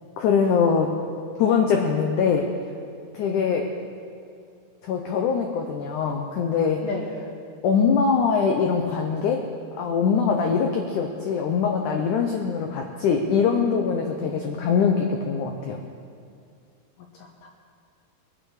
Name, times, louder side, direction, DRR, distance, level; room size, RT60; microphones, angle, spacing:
voice 1, 0.2-0.9 1.4-2.5 3.1-3.7 4.8-6.8 7.6-9.4 9.8-15.8, left 6 dB, 85° left, 2 dB, 1.7 m, -22 dB
voice 2, 3.3-3.9 6.8-7.1 10.3-10.5 13.9-14.8 17.1-17.5, left 6 dB, 65° left, 0 dB, 2.3 m, -37 dB
23.0 x 8.7 x 4.9 m, 2.3 s
omnidirectional pair, 4.8 m